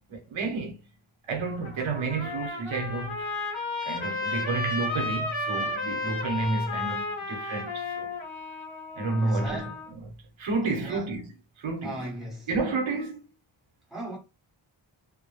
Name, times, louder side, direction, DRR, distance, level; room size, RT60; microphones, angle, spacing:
voice 1, 0.1-0.8 1.3-3.3 3.8-8.2 9.0-9.7 10.4-11.3 11.6-12.0 12.5-13.2, right 3 dB, 75° right, 0.9 m, -30 dB
Trumpet, 1.5-9.9, left 2 dB, 75° left, 1.0 m, -33 dB
voice 2, 9.2-9.8 10.8-11.1 11.8-12.5 13.9-14.2, right 1 dB, ahead, 1.0 m, -38 dB
2.1 x 2.0 x 2.9 m
wide cardioid pair, 140°, 48 cm